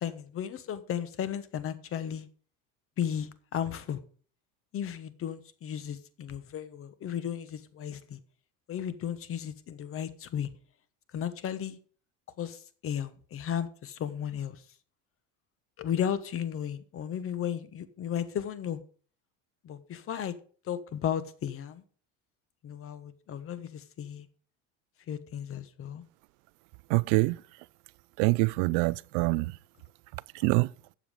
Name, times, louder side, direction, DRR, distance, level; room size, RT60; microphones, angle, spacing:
voice 1, 0.0-2.3 3.0-4.0 4.7-8.2 8.7-10.5 11.1-11.8 12.4-14.6 15.8-18.8 19.6-20.4 20.7-21.8 22.6-24.3 25.1-26.0, left 9 dB, 35° left, 1.1 m, -34 dB
voice 2, 26.9-27.4 28.2-29.5 30.4-30.7, right 25 dB, 65° right, 0.5 m, -25 dB
12.5 x 7.5 x 5.0 m
supercardioid pair, 125°, 36 cm